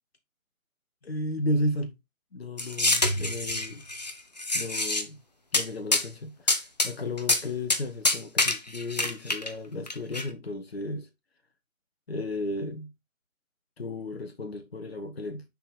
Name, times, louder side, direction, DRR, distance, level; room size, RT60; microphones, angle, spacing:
voice 1, 1.0-1.9 2.3-3.8 4.5-5.2 5.5-11.1 12.1-12.9 13.8-15.4, left 1 dB, 45° left, 1.4 m, -33 dB
sound 1, 2.6-4.1 4.4-5.0 5.5-5.6 5.9-6.1 6.5-6.9 7.2-7.4 7.7-7.8 8.0-9.5 9.9-10.2, left 2 dB, 30° left, 0.8 m, -26 dB
10.0 x 4.5 x 3.5 m
figure-of-eight pair, 155°, 43 cm